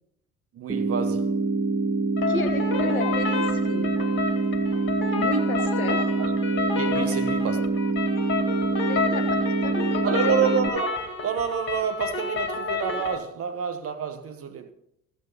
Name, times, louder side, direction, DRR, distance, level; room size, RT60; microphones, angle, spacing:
voice 1, 0.5-1.4 6.2-6.3 6.7-7.6 10.0-10.9 11.2-14.7, right 7 dB, 35° right, 1.2 m, -28 dB
sound 1, 0.7-10.7, right 3 dB, 15° right, 1.2 m, -25 dB
sound 2, 2.2-13.2, left 4 dB, 30° left, 2.5 m, -30 dB
voice 2, 2.3-4.0 5.1-6.1 6.9-7.1 8.8-10.0, left 2 dB, 85° left, 1.2 m, -32 dB
14.5 x 8.4 x 4.1 m
figure-of-eight pair, 60°, 41 cm